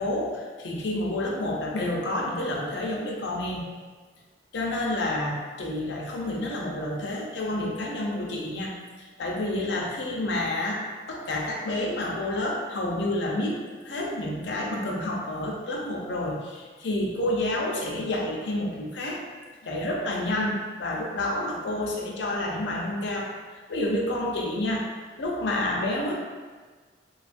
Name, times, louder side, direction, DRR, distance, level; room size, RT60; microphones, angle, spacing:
voice 1, 0.0-3.6 4.5-10.8 11.1-24.9 25.2-26.1, left 1 dB, 85° left, -2 dB, 0.5 m, -29 dB
3.1 x 2.3 x 2.5 m, 1.4 s
head